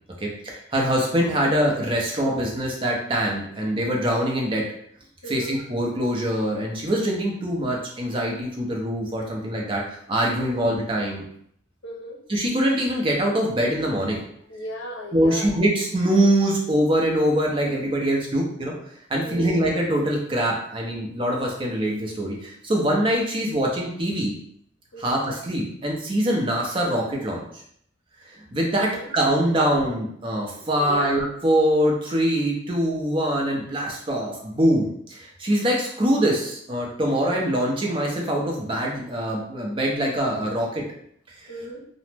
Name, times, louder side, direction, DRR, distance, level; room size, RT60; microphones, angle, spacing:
voice 1, 0.2-4.6 5.3-11.2 12.3-14.2 15.1-18.7 19.1-24.4 25.0-27.4 28.5-40.8, right 1 dB, 25° right, -1 dB, 0.5 m, -23 dB
voice 2, 5.2-5.6 11.8-12.2 14.5-15.5 19.2-19.6 24.9-25.2 28.8-29.1 30.7-31.1 41.5-41.8, left 1 dB, 75° left, 1 dB, 0.6 m, -36 dB
2.9 x 2.0 x 3.3 m, 0.67 s
head